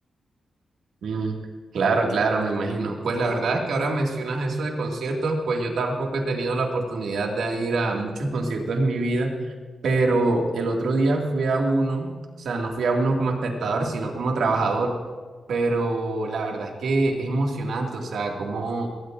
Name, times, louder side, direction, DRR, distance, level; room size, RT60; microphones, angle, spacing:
voice 1, 1.0-1.4 1.7-9.3 9.8-12.1 12.4-14.9 15.5-18.9, right 3 dB, 85° right, 1 dB, 2.1 m, -24 dB
20.5 x 18.0 x 2.6 m, 1.5 s
wide cardioid pair, 130°, 0 cm